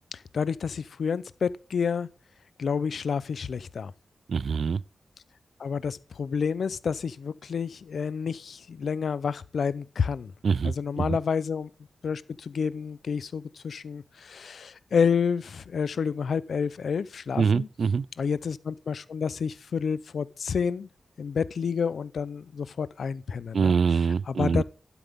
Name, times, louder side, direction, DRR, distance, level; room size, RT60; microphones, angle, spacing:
voice 1, 0.1-2.1 2.6-3.9 5.6-10.3 10.6-11.7 12.0-17.7 18.2-20.9 21.2-23.8 24.3-24.6, left 6 dB, 70° left, 0.6 m, -29 dB
voice 2, 4.3-4.8 10.4-11.2 17.4-18.1 23.5-24.6, right 5 dB, 60° right, 0.4 m, -24 dB
12.0 x 10.0 x 3.6 m
wide cardioid pair, 140°, 0 cm